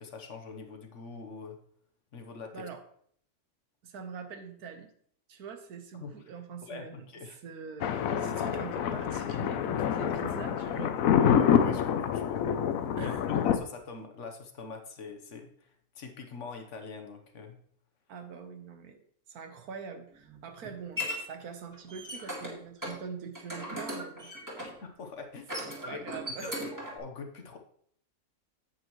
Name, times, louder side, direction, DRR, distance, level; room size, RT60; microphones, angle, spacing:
voice 1, 0.0-1.6 2.1-2.6 5.9-6.1 6.6-7.4 11.2-12.6 13.0-15.7 15.9-17.6 24.6-25.5 25.8-26.0 26.4-27.6, left 4 dB, 55° left, 5 dB, 1.3 m, -43 dB
voice 2, 2.5-2.8 3.8-4.9 5.3-7.1 7.4-11.0 13.0-13.4 18.1-19.0 19.3-24.3 25.9-26.7, right 6 dB, 85° right, 7 dB, 1.5 m, -44 dB
Thunder, 7.8-13.6, left 8 dB, 75° left, 1.0 m, -27 dB
sound 1, 20.1-21.2 21.7-22.5 22.8-23.0 23.3-24.8 25.4-27.0, equal, 10° right, 2.1 m, -37 dB
8.8 x 8.0 x 3.1 m, 0.63 s
omnidirectional pair, 1.5 m